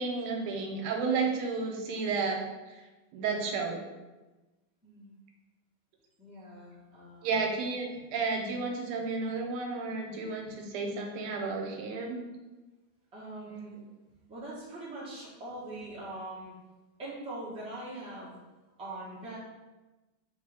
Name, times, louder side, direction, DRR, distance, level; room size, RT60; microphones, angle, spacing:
voice 1, 0.0-2.5 3.1-3.8 7.2-12.2, right 4 dB, 90° right, 2 dB, 1.5 m, -32 dB
voice 2, 3.2-3.5 4.8-5.1 6.2-7.4 7.9-8.0 10.4-10.6 13.1-13.7 14.3-16.5 17.0-18.4 18.8-19.4, right 2 dB, 5° right, -7 dB, 0.4 m, -42 dB
4.1 x 3.3 x 3.4 m, 1.1 s
omnidirectional pair, 2.3 m